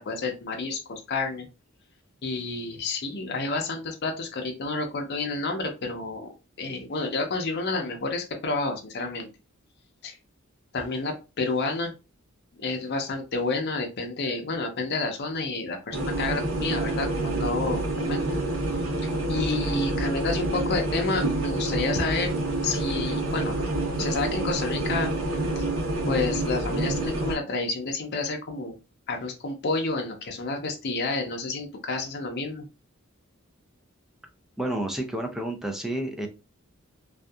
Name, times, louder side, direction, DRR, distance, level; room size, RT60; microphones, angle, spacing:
voice 1, 0.1-1.5 2.2-6.3 6.6-9.3 10.0-10.2 10.7-11.9 12.6-18.2 19.3-22.4 22.6-23.6 24.0-25.1 25.6-25.7 26.1-28.8 29.1-32.6, left 3 dB, 50° left, 3 dB, 0.6 m, -30 dB
sound 1, 15.9-27.3, right 2 dB, 70° right, 0.9 m, -28 dB
voice 2, 34.6-36.3, right 1 dB, ahead, 2 dB, 0.4 m, -30 dB
2.6 x 2.4 x 2.3 m, 0.29 s
head